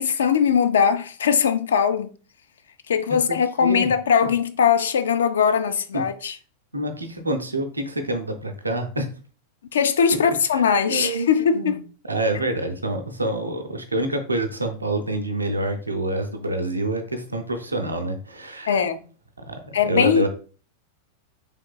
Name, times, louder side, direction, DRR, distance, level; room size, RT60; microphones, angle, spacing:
voice 1, 0.0-2.1 2.9-6.3 9.7-11.8 18.7-19.0 19.7-20.3, left 7 dB, 65° left, 0.3 m, -20 dB
voice 2, 3.1-3.9 4.2-4.3 5.9-6.0 6.7-9.1 10.5-18.8 19.4-20.3, right 1 dB, 80° right, 0.5 m, -27 dB
3.5 x 3.2 x 2.2 m
figure-of-eight pair, 90°, 0 cm